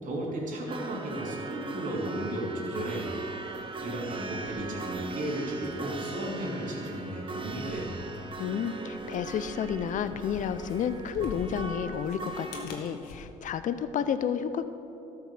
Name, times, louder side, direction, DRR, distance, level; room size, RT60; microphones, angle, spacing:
voice 1, 0.0-3.2 3.8-8.1, right 1 dB, 55° right, -3 dB, 3.0 m, -34 dB
sound 1, 0.7-12.7, right 3 dB, 30° right, 1.2 m, -39 dB
sound 2, 2.7-13.2, left 3 dB, 85° left, 1.5 m, -48 dB
voice 2, 8.4-14.6, left 8 dB, 55° left, 12 dB, 0.6 m, -31 dB
12.5 x 5.9 x 6.7 m, 2.9 s
supercardioid pair, 75°, 16 cm